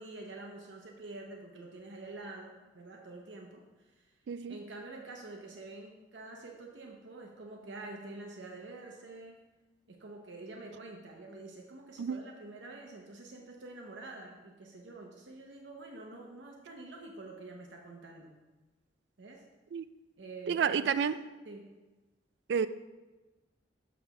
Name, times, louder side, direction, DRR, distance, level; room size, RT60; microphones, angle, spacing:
voice 1, 0.0-4.1 4.5-9.4 9.9-18.3 19.2-19.4 20.2-21.0 21.4-21.7, right 2 dB, 85° right, 1 dB, 0.8 m, -47 dB
voice 2, 20.5-21.2 22.5-22.7, right 7 dB, 70° right, 14 dB, 0.3 m, -29 dB
7.2 x 3.4 x 6.0 m, 1.2 s
head